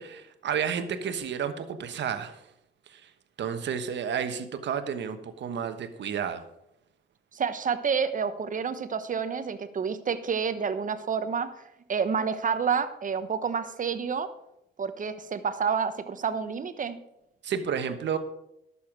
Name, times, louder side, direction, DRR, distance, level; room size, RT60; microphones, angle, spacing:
voice 1, 0.0-2.4 2.9-3.1 3.4-6.4 17.4-18.2, right 7 dB, 65° right, 9 dB, 1.2 m, -31 dB
voice 2, 7.3-11.5 11.9-14.3 14.8-17.0, right 6 dB, 40° right, 11 dB, 1.1 m, -29 dB
12.0 x 7.1 x 6.1 m, 0.84 s
cardioid pair, 90°, 20 cm